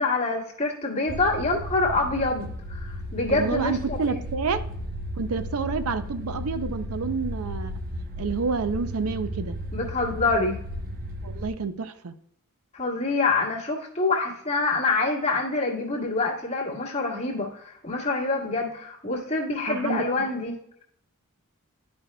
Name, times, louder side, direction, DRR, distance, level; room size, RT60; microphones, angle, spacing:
voice 1, 0.0-4.1 9.7-10.6 12.7-20.8, left 3 dB, 30° left, -3 dB, 1.6 m, -26 dB
sound 1, 1.1-11.5, equal, 40° right, 0.8 m, -34 dB
voice 2, 3.3-4.6 5.2-7.7 8.2-9.6 11.2-12.1 19.7-20.3, right 4 dB, 70° right, 11 dB, 0.5 m, -29 dB
11.0 x 5.1 x 2.2 m, 0.70 s
head